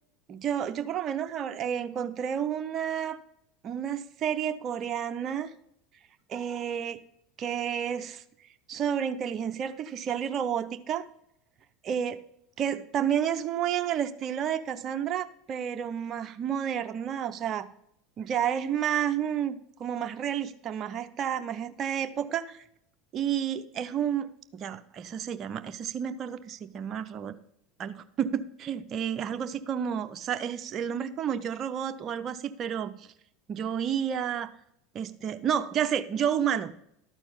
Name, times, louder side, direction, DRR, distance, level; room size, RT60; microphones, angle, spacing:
voice 1, 0.3-3.2 3.6-5.5 6.3-7.0 7.4-8.2 8.7-11.1 11.8-12.2 12.6-17.7 18.2-22.6 23.1-27.3 27.8-33.1 33.5-34.5 34.9-36.7, right 9 dB, 40° right, 9 dB, 0.7 m, -30 dB
12.0 x 4.5 x 5.4 m, 0.74 s
hypercardioid pair, 85°, 0 cm